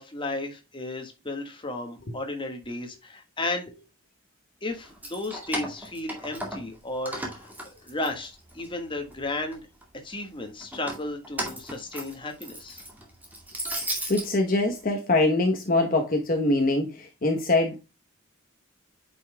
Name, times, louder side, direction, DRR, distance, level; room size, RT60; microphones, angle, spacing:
voice 1, 0.0-3.7 4.6-9.6 10.0-12.8, left 2 dB, 25° left, 1.6 m, -34 dB
Keys jangling, 4.8-6.8 7.1-8.7 9.1-9.8 10.6-14.3, right 1 dB, 10° right, 2.0 m, -35 dB
voice 2, 13.8-17.8, left 2 dB, 40° left, 1.0 m, -24 dB
9.2 x 5.5 x 2.2 m
head